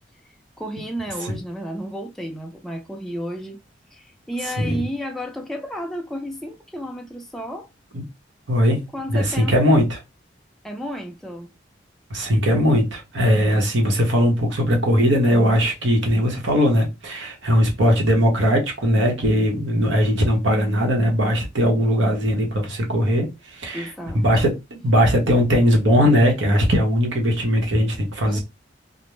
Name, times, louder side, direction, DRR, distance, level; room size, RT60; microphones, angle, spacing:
voice 1, 0.6-3.6 3.9-7.7 8.9-9.7 10.6-11.5 23.7-24.2 28.2-28.4, equal, ahead, 0.4 m, -32 dB
voice 2, 8.5-8.8 9.1-9.9 12.1-28.4, equal, 90° right, 1.0 m, -19 dB
2.5 x 2.0 x 3.1 m
head